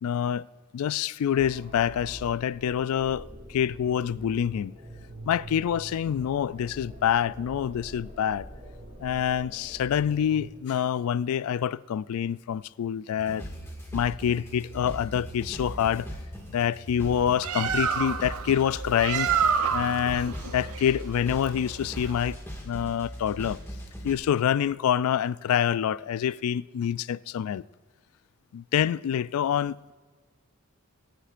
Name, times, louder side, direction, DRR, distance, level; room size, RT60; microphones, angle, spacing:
voice 1, 0.0-0.5 0.7-4.7 5.3-8.5 9.0-13.4 13.9-16.1 16.5-19.3 19.7-22.4 22.6-23.6 24.0-27.6 28.5-29.9, left 9 dB, 85° left, 0.3 m, -26 dB
sound 1, 1.3-10.5, right 1 dB, 35° right, 2.8 m, -45 dB
sound 2, 13.2-24.1, equal, 10° left, 1.9 m, -39 dB
Bird, 17.2-22.4, right 7 dB, 85° right, 0.6 m, -29 dB
26.0 x 10.0 x 2.5 m
head